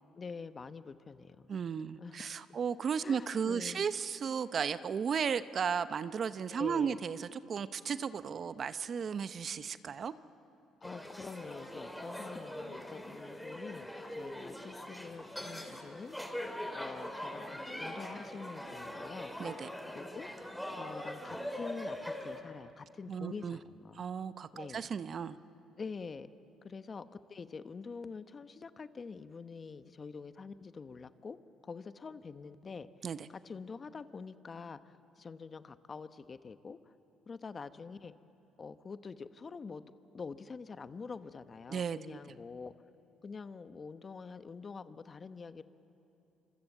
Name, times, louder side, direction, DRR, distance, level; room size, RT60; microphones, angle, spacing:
voice 1, 0.1-1.5 1.9-2.2 3.0-3.9 6.5-7.0 10.8-19.3 19.9-20.3 20.8-24.0 24.5-24.9 25.8-26.3 26.6-31.4 31.6-37.0 37.3-38.1 38.6-42.7 43.2-45.6, left 5 dB, 40° left, 12 dB, 1.0 m, -46 dB
voice 2, 1.5-10.1 19.4-19.7 23.1-23.6 24.0-25.4 33.0-33.2 41.7-42.2, right 6 dB, 50° right, 14 dB, 0.8 m, -35 dB
sound 1, 10.8-22.4, left 1 dB, 5° left, 2.9 m, -42 dB
26.0 x 25.5 x 8.1 m, 2.9 s
supercardioid pair, 70°, 0 cm